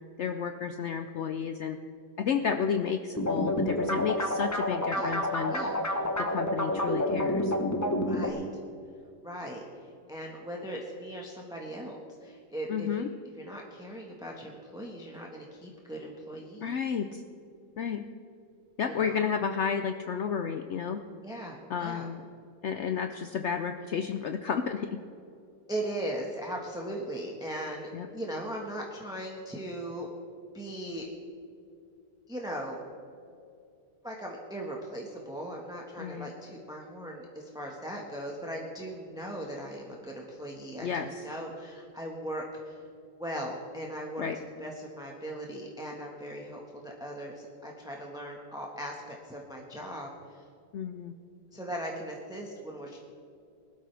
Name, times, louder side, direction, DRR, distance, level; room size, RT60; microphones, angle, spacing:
voice 1, 0.2-1.8 2.2-5.5 6.2-7.5 12.7-13.1 16.6-17.2 17.8-18.1 18.8-21.0 21.7-22.2 22.6-25.0 27.9-28.1 36.0-36.3 40.8-41.2 44.2-44.4 50.7-51.2, left 7 dB, 75° left, 7 dB, 0.6 m, -31 dB
sound 1, 3.2-8.3, left 1 dB, 15° left, 0.5 m, -29 dB
voice 2, 8.0-8.4 9.2-13.0 13.4-16.7 18.9-19.3 21.2-22.1 25.7-30.1 30.5-31.1 32.3-32.8 34.0-42.8 43.2-44.3 44.6-50.4 51.5-53.0, right 1 dB, 5° right, -1 dB, 1.1 m, -39 dB
20.0 x 12.5 x 3.4 m, 2.6 s
omnidirectional pair, 1.9 m